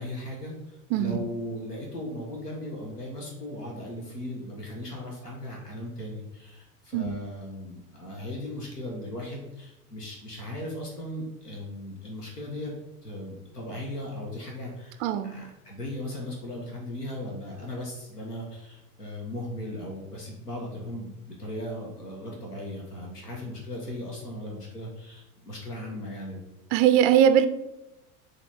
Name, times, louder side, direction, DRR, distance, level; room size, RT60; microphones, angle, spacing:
voice 1, 0.0-12.7 13.0-26.4, left 1 dB, 85° left, -1 dB, 1.6 m, -37 dB
voice 2, 0.9-1.2 6.9-7.2 15.0-15.4 26.7-27.5, right 9 dB, 30° right, 10 dB, 0.4 m, -21 dB
6.9 x 3.6 x 4.5 m, 0.91 s
figure-of-eight pair, 85°, 46 cm